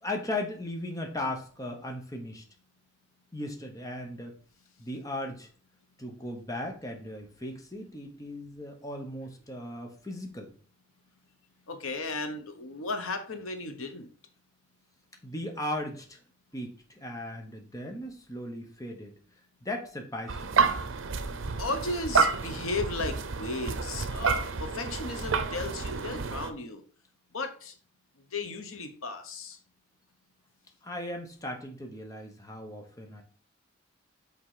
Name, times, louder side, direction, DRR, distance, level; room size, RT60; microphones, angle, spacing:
voice 1, 0.0-2.4 3.3-4.4 4.8-5.5 6.0-10.5 15.2-16.2 16.5-19.1 19.6-20.6 30.8-33.2, left 1 dB, 15° left, 2 dB, 1.0 m, -37 dB
voice 2, 11.7-14.1 21.6-26.8 27.3-27.7 28.2-29.6, left 3 dB, 90° left, 7 dB, 1.1 m, -35 dB
sound 1, 20.3-26.5, right 5 dB, 75° right, 0.7 m, -29 dB
5.8 x 4.5 x 4.9 m, 0.42 s
head